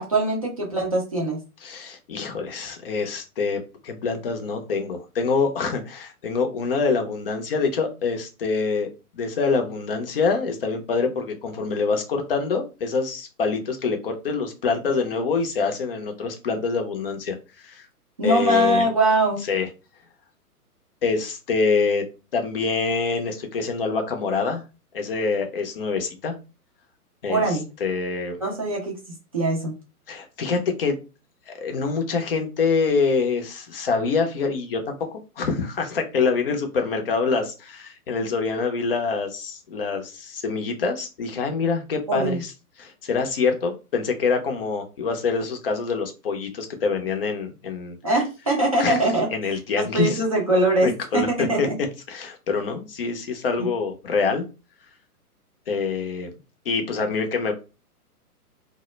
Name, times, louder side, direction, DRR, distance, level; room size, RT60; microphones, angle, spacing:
voice 1, 0.0-1.4 18.2-19.4 27.3-27.6 28.4-29.0 29.3-29.7 42.1-42.4 48.0-49.3 49.8-51.8 53.6-53.7, right 1 dB, 25° right, -2 dB, 0.4 m, -22 dB
voice 2, 1.6-17.9 18.2-18.9 19.5-19.7 21.0-22.0 22.3-24.6 24.9-26.3 27.2-28.4 30.1-31.0 31.5-34.9 35.4-42.5 42.8-48.0 48.8-49.0 49.3-50.2 50.8-51.7 52.1-54.4 55.7-56.3 56.7-57.5, left 4 dB, 40° left, 4 dB, 0.5 m, -25 dB
2.0 x 2.0 x 3.0 m, 0.30 s
figure-of-eight pair, 125°, 46 cm